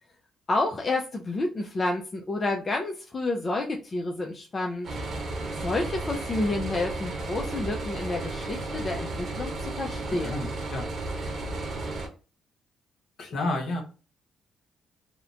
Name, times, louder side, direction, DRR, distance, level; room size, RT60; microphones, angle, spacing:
voice 1, 0.5-4.9 5.6-10.5, left 2 dB, 35° left, 2 dB, 0.4 m, -29 dB
sound 1, 4.8-12.1, right 2 dB, 55° right, 0.9 m, -33 dB
voice 2, 10.2-10.8 13.2-13.8, left 2 dB, 65° left, 2 dB, 0.9 m, -30 dB
2.8 x 2.1 x 2.5 m, 0.34 s
cardioid pair, 90°, 0 cm